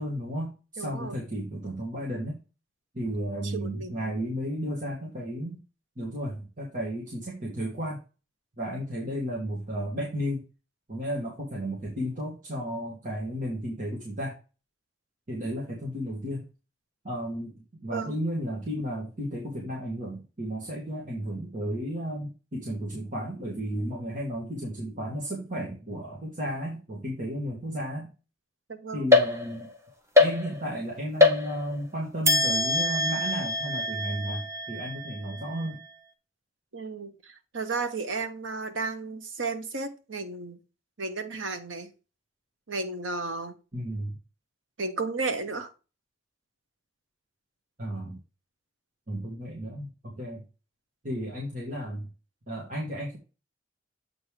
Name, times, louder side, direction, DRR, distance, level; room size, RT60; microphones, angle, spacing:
voice 1, 0.0-2.4 2.9-5.6 6.0-8.0 8.6-10.4 10.9-14.4 15.3-16.5 17.0-28.1 28.9-29.7 30.2-35.8 43.7-44.2 47.8-48.2 49.1-50.4 51.0-52.1 52.5-53.2, equal, 45° right, -3 dB, 2.0 m, -33 dB
voice 2, 0.8-1.2 3.4-4.3 17.9-18.1 28.7-29.1 36.7-40.6 41.0-41.9 42.7-43.5 44.8-45.7, right 3 dB, 90° right, 7 dB, 1.2 m, -33 dB
sound 1, 29.1-29.8 30.1-30.8 31.2-31.9 32.2-35.7, left 3 dB, 15° right, 1.1 m, -24 dB
7.9 x 3.7 x 4.9 m, 0.32 s
head